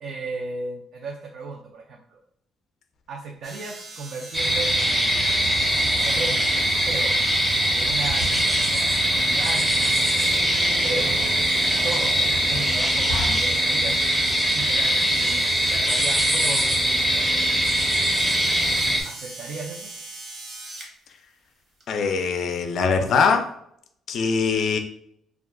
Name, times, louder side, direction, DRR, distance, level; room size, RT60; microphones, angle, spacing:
voice 1, 0.0-2.2 3.1-5.2 6.0-7.2 7.7-10.0 10.8-11.1 11.8-14.1 14.5-17.4 19.0-19.9, right 3 dB, 70° right, 0 dB, 0.4 m, -35 dB
sound 1, 3.4-20.9 21.8-21.9, right 2 dB, 50° right, 0.9 m, -40 dB
sound 2, 4.3-19.0, equal, 5° right, 0.5 m, -22 dB
sound 3, 4.4-14.5, right 2 dB, 90° right, 1.2 m, -36 dB
voice 2, 21.9-23.5 24.1-24.8, left 5 dB, 60° left, 6 dB, 0.4 m, -22 dB
2.3 x 2.2 x 3.6 m, 0.70 s
cardioid pair, 110°, 0 cm